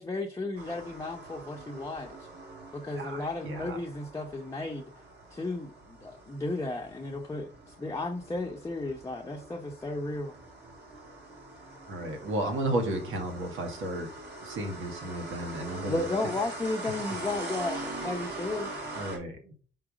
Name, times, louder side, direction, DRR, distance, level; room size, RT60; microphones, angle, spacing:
voice 1, 0.0-2.2 2.7-4.9 5.3-7.5 7.8-10.3 15.9-18.7, left 2 dB, 15° left, 0 dB, 0.9 m, -34 dB
sound 1, 0.6-19.2, right 2 dB, 60° right, 3.8 m, -42 dB
voice 2, 2.9-3.8 11.9-14.1 14.4-16.0 18.9-19.5, right 1 dB, 85° right, 4 dB, 1.9 m, -33 dB
4.9 x 4.7 x 4.9 m, 0.40 s
cardioid pair, 90°, 20 cm